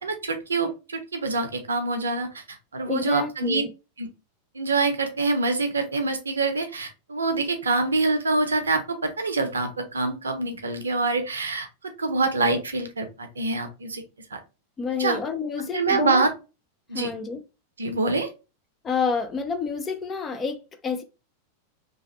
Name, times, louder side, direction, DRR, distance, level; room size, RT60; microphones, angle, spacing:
voice 1, 0.0-2.4 2.7-3.6 4.0-4.1 4.5-11.7 12.0-14.0 14.3-14.4 15.0-15.2 15.6-16.3 16.9-17.1 17.8-18.3, right 3 dB, 70° right, 0.6 m, -25 dB
voice 2, 2.9-3.7 14.8-16.2 16.9-17.4 18.8-21.0, left 5 dB, 20° left, 0.5 m, -29 dB
2.9 x 2.4 x 3.0 m
figure-of-eight pair, 90°, 0 cm